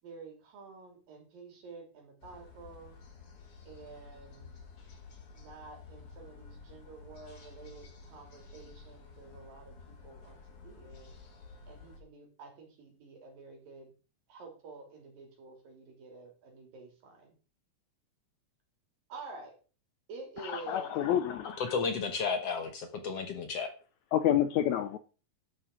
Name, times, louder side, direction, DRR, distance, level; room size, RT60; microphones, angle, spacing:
voice 1, 0.0-3.0 3.7-4.5 5.3-11.1 11.7-13.9 14.3-17.3 19.1-19.6 20.1-21.0, right 4 dB, 85° right, 2 dB, 4.9 m, -49 dB
sound 1, 2.2-12.0, left 4 dB, 45° left, 2.7 m, -52 dB
voice 2, 20.4-21.6 24.1-25.0, left 11 dB, 80° left, 11 dB, 1.7 m, -28 dB
voice 3, 21.4-23.7, left 5 dB, 60° left, 7 dB, 1.8 m, -33 dB
11.5 x 6.5 x 6.0 m, 0.36 s
omnidirectional pair, 3.9 m